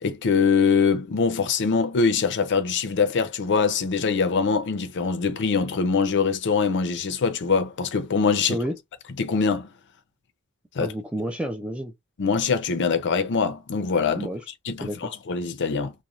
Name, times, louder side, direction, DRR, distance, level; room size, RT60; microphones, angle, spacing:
voice 1, 0.0-8.6 9.2-9.7 10.8-10.9 12.2-14.3 14.7-15.9, left 5 dB, 55° left, 0.5 m, -23 dB
voice 2, 10.8-11.9 14.1-14.4 14.8-15.1, equal, 5° right, 0.3 m, -30 dB
2.5 x 2.1 x 3.0 m
head